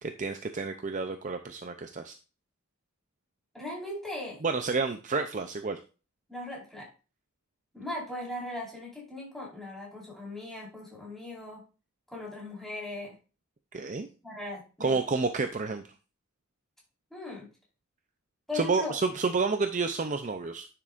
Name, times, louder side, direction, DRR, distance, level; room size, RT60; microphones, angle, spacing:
voice 1, 0.0-2.1 4.4-5.8 13.7-14.1 14.8-15.8 18.5-20.7, right 4 dB, 35° right, 7 dB, 0.5 m, -30 dB
voice 2, 3.5-4.4 6.3-6.9 7.7-11.6 12.1-13.1 14.2-15.0 17.1-17.5 18.5-18.9, left 1 dB, ahead, -5 dB, 4.4 m, -38 dB
9.9 x 7.4 x 2.5 m, 0.33 s
head